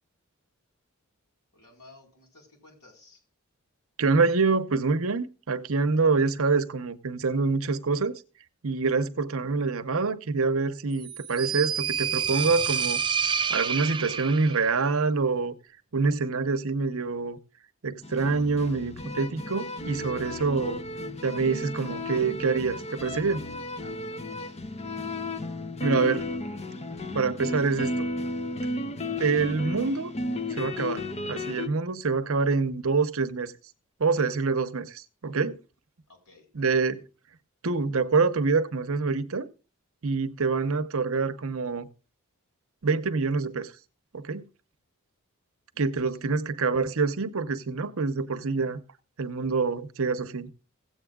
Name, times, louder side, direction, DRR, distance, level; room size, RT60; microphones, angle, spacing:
voice 1, 1.5-3.2 23.8-24.6 36.1-36.5 45.7-46.2, left 2 dB, 75° left, 4.2 m, -55 dB
voice 2, 4.0-8.2 8.6-13.0 13.5-15.5 15.9-17.4 17.8-20.8 21.2-23.5 25.8-26.3 27.1-28.1 29.2-30.1 30.5-33.5 34.0-35.6 36.5-37.0 37.6-39.5 40.0-41.9 42.8-43.7 44.1-44.4 45.8-48.8 49.2-50.5, right 4 dB, 65° right, 0.8 m, -26 dB
sound 1, 11.0-14.7, right 7 dB, 20° right, 0.4 m, -28 dB
sound 2, 18.0-31.7, left 1 dB, 30° left, 0.6 m, -34 dB
16.5 x 8.2 x 2.3 m
head